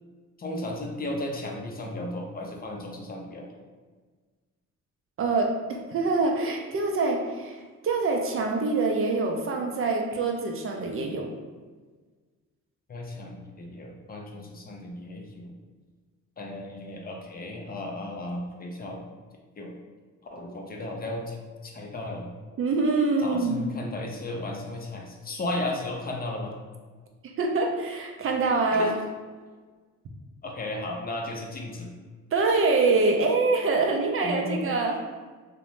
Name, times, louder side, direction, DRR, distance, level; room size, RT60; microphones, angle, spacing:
voice 1, 0.4-3.5 12.9-15.5 16.4-19.0 19.6-19.7 20.3-21.4 21.6-22.3 23.2-26.5 28.7-28.9 30.4-31.9 34.2-34.7, left 1 dB, 30° left, 0 dB, 0.4 m, -34 dB
voice 2, 5.2-11.3 22.6-23.6 27.4-29.0 32.3-35.0, right 3 dB, 45° right, 2 dB, 0.4 m, -25 dB
2.6 x 2.1 x 3.0 m, 1.4 s
cardioid pair, 90°, 30 cm